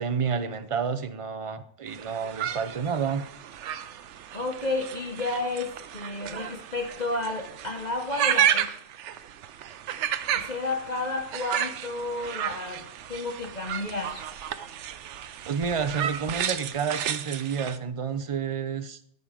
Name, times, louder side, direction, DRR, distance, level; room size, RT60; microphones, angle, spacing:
voice 1, 0.0-3.3 15.5-19.0, right 6 dB, 40° right, 11 dB, 0.5 m, -29 dB
sound 1, 1.9-17.8, right 10 dB, 70° right, 0.9 m, -32 dB
voice 2, 4.3-8.7 10.4-14.2, left 2 dB, 40° left, 3 dB, 0.9 m, -31 dB
13.5 x 5.5 x 5.0 m, 0.67 s
omnidirectional pair, 1.3 m